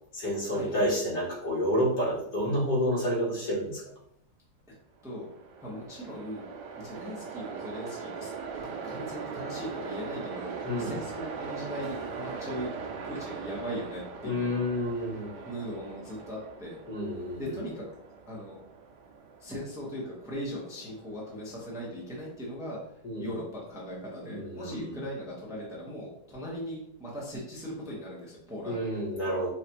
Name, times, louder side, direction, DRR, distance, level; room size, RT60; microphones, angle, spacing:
voice 1, 0.1-3.8 10.6-11.0 14.2-15.3 16.9-17.6 23.0-23.4 24.2-25.0 28.6-29.5, equal, 85° left, -7 dB, 2.5 m, -29 dB
Train, 5.1-22.3, right 5 dB, 85° right, 1.2 m, -41 dB
voice 2, 5.6-6.4 6.8-8.3 8.6-10.5 10.8-12.7 13.0-14.6 15.5-16.8 17.4-17.8 18.3-18.6 19.4-22.8 23.2-28.8, equal, 5° right, -5 dB, 0.7 m, -39 dB
5.6 x 2.5 x 2.9 m, 0.74 s
omnidirectional pair, 1.8 m